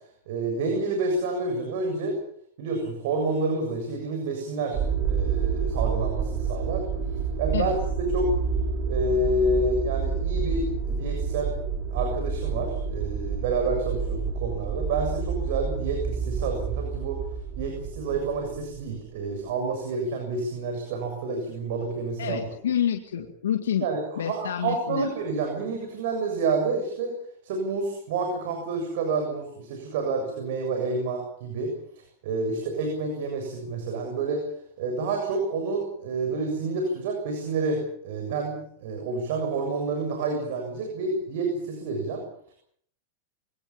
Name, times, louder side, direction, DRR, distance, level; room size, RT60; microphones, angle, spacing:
voice 1, 0.3-2.2 2.6-6.8 7.4-8.3 8.9-11.5 11.9-17.2 17.6-22.4 23.8-27.1 27.4-31.7 32.2-34.4 34.8-42.2 42.5-42.6, right 3 dB, 65° right, 3 dB, 7.3 m, -29 dB
sound 1, 4.7-19.0, right 5 dB, 35° right, 5.3 m, -29 dB
voice 2, 22.2-23.9 24.2-25.1, left 9 dB, 90° left, 5 dB, 2.0 m, -28 dB
25.0 x 18.0 x 7.3 m, 0.64 s
hypercardioid pair, 125°, 0 cm